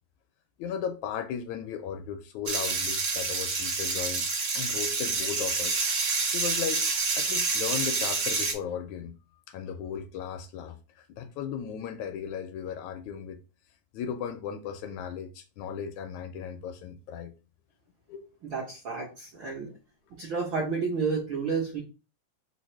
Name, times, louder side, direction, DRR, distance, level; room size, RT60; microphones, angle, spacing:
voice 1, 0.6-4.2 4.5-5.8 6.3-9.2 9.5-13.4 13.9-17.3 18.1-18.3 19.5-19.6, left 8 dB, 80° left, 1.7 m, -36 dB
sound 1, 2.5-8.5, right 4 dB, 90° right, 0.9 m, -28 dB
voice 2, 18.5-19.7 20.2-21.8, right 5 dB, 70° right, 1.1 m, -30 dB
4.7 x 2.4 x 4.3 m
omnidirectional pair, 3.5 m